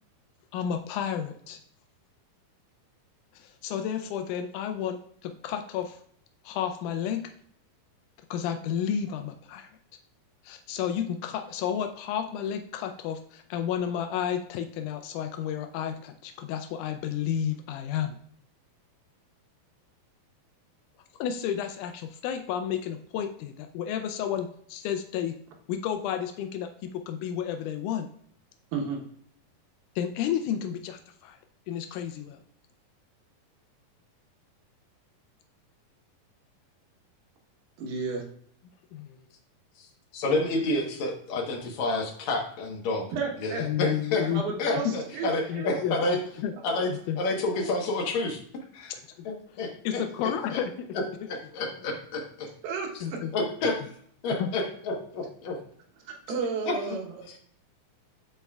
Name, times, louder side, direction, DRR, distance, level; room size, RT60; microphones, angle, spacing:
voice 1, 0.5-1.6 3.3-6.0 6.4-7.2 8.3-9.7 10.4-18.2 21.2-25.3 25.7-28.1 30.0-31.4 31.7-32.4 38.9-39.2 43.6-44.4 44.9-45.0 45.5-46.5 47.1-47.2 49.2-49.3 49.8-50.7 53.0-53.3 53.6-53.7 54.4-54.5, left 9 dB, 90° left, 6 dB, 1.7 m, -31 dB
voice 2, 37.8-38.2 43.1-43.6 44.3-46.1 52.6-53.2 56.0-57.3, right 5 dB, 85° right, 0 dB, 2.9 m, -33 dB
voice 3, 40.1-43.1 43.4-44.3 44.6-46.2 46.6-46.9 47.2-48.4 48.7-48.9 49.2-50.6 51.3-52.5 53.3-53.8 54.2-55.6 56.3-56.7 57.3-57.4, left 2 dB, 60° left, 0 dB, 2.2 m, -29 dB
12.0 x 4.2 x 2.3 m, 0.63 s
omnidirectional pair, 4.1 m